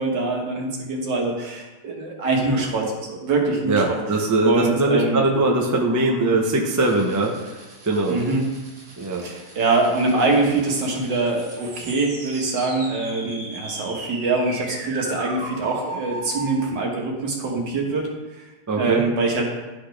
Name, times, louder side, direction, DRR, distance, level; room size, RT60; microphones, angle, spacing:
voice 1, 0.0-4.0 4.4-5.2 8.1-8.5 9.2-18.5 18.8-19.5, right 3 dB, 80° right, 0 dB, 1.9 m, -24 dB
voice 2, 3.7-7.5 7.9-8.2 9.0-9.3 18.7-19.0, right 2 dB, 20° right, 0 dB, 0.4 m, -21 dB
sound 1, 6.8-16.6, right 2 dB, 65° right, 2.1 m, -38 dB
11.5 x 4.1 x 3.3 m, 1.1 s
omnidirectional pair, 1.9 m